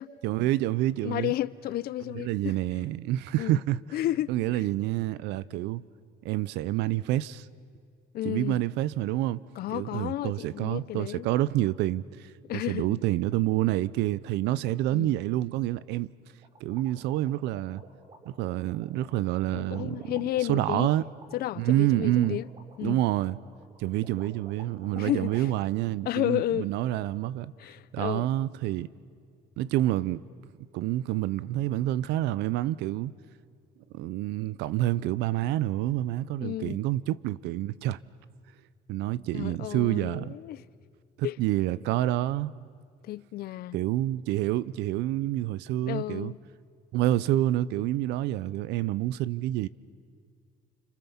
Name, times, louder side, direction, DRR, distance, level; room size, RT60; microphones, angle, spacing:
voice 1, 0.2-1.3 2.1-3.8 4.3-5.8 6.2-7.5 8.2-9.4 9.7-12.0 12.7-16.1 16.6-17.8 18.3-20.0 20.5-21.0 21.6-22.4 22.8-23.4 23.8-27.5 27.9-28.9 29.6-30.2 30.7-33.1 33.9-38.0 38.9-40.4 41.2-42.5 43.7-46.3 46.9-49.7, right 14 dB, 90° right, 0.6 m, -28 dB
voice 2, 1.0-2.6 3.4-3.6 3.9-4.6 8.1-8.6 9.6-11.3 12.5-13.0 14.9-15.1 19.5-20.9 21.3-22.5 22.8-23.0 24.9-25.5 26.0-26.7 27.6-28.3 36.4-36.8 39.3-40.6 41.2-41.4 43.0-43.8 45.9-46.4, left 14 dB, 65° left, 0.6 m, -32 dB
sound 1, 16.4-25.5, right 3 dB, 40° right, 6.7 m, -50 dB
29.5 x 26.5 x 7.2 m
cardioid pair, 110°, 17 cm